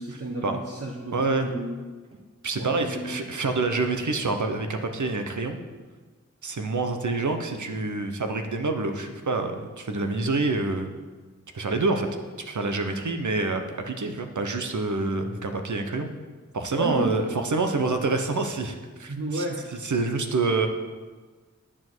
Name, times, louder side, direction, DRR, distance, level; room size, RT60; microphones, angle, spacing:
voice 1, 0.0-1.8 2.1-2.2 2.6-3.3 16.7-17.5 19.1-19.7, right 1 dB, 50° right, -1 dB, 1.2 m, -32 dB
voice 2, 1.1-1.5 2.4-5.6 6.4-10.9 11.5-12.1 12.5-16.1 16.5-19.4 19.8-20.7, right 3 dB, 80° right, 6 dB, 1.1 m, -27 dB
10.0 x 7.6 x 6.2 m, 1.4 s
wide cardioid pair, 60°, 29 cm